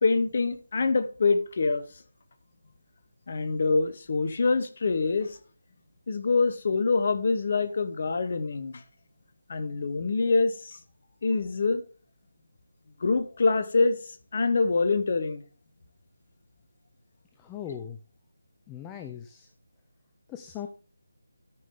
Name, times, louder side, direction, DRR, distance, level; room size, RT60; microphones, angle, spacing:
voice 1, 0.0-1.8 3.3-5.4 6.1-8.8 9.5-10.8 11.2-11.8 13.0-15.4, left 4 dB, 40° left, 1.1 m, -25 dB
voice 2, 17.4-18.0 18.7-19.5 20.3-20.7, left 9 dB, 10° left, 0.5 m, -39 dB
13.0 x 5.2 x 3.7 m
figure-of-eight pair, 155°, 0 cm